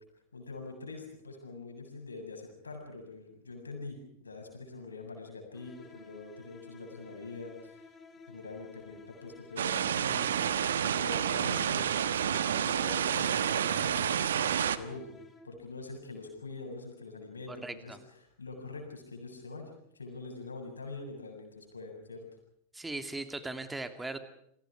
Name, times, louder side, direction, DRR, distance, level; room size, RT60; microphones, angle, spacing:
voice 1, 0.3-7.8 8.3-11.9 12.5-15.2 15.4-18.0 18.4-22.2 22.8-22.9, left 3 dB, 75° left, 3 dB, 7.6 m, -44 dB
sound 1, 5.5-15.8, left 4 dB, 20° left, 3.3 m, -53 dB
sound 2, 9.6-14.8, right 9 dB, 65° right, 1.3 m, -29 dB
voice 2, 17.5-18.0 22.7-24.2, right 2 dB, 10° right, 9 dB, 2.7 m, -38 dB
30.0 x 23.5 x 4.9 m, 0.72 s
figure-of-eight pair, 90°, 0 cm